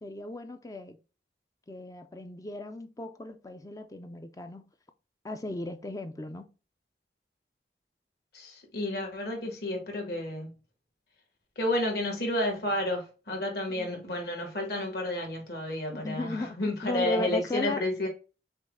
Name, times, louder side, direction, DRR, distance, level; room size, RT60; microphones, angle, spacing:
voice 1, 0.0-1.0 1.7-4.7 5.2-6.5 13.7-14.2 15.9-17.8, left 2 dB, 20° left, 0.4 m, -36 dB
voice 2, 8.3-10.5 11.5-18.1, left 1 dB, 60° left, 1.8 m, -31 dB
6.3 x 2.4 x 3.5 m
head